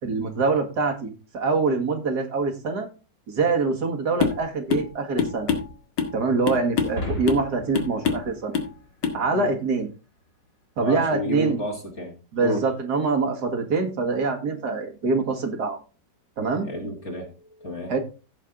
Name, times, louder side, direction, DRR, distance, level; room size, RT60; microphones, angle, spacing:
voice 1, 0.0-2.9 3.3-5.5 6.1-8.5 9.1-9.9 10.8-11.6 12.3-15.8 16.4-16.7 17.9-18.0, right 4 dB, 65° right, 2.2 m, -24 dB
sound 1, 4.2-4.4 4.7-4.9 5.2-6.2 6.5-7.0 7.3-7.5 7.7-8.3 8.5-8.7 9.0-9.2, left 6 dB, 85° left, 2.3 m, -25 dB
sound 2, 6.8-9.3, left 1 dB, 60° left, 3.7 m, -35 dB
voice 2, 10.8-12.2 12.4-12.7 16.6-17.9, left 1 dB, 40° left, 2.0 m, -31 dB
16.0 x 5.4 x 3.8 m
omnidirectional pair, 1.9 m